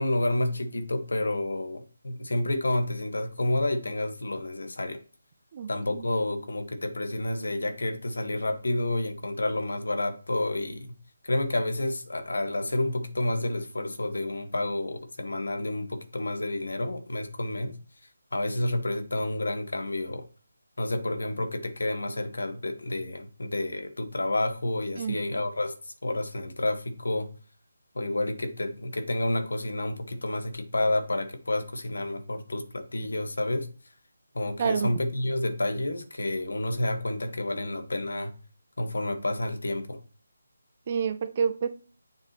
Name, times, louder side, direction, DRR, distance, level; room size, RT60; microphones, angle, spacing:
voice 1, 0.0-5.0 5.7-10.9 11.2-17.7 18.3-20.2 20.8-25.7 26.0-27.3 27.9-33.7 34.3-38.3 38.8-40.0, left 1 dB, 80° left, 1.5 m, -29 dB
voice 2, 5.5-6.0 25.0-25.2 34.6-34.9 40.9-41.7, right 6 dB, 30° right, 0.6 m, -28 dB
7.5 x 5.9 x 3.0 m
figure-of-eight pair, 165°, 0 cm